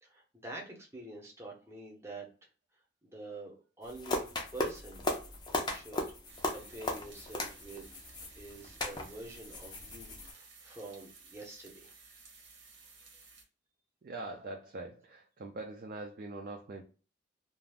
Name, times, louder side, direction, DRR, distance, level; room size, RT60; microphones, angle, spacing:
voice 1, 0.0-2.3 3.0-4.3 4.5-5.1 5.5-6.0 6.5-7.8 8.3-11.9, right 2 dB, 15° right, -1 dB, 0.6 m, -47 dB
sound 1, 3.8-10.3, left 2 dB, 25° left, 0.4 m, -37 dB
sound 2, 6.3-13.4, right 4 dB, 90° right, 0.8 m, -56 dB
voice 2, 14.0-16.8, right 2 dB, 50° right, 2 dB, 0.3 m, -43 dB
2.4 x 2.0 x 3.3 m, 0.37 s
head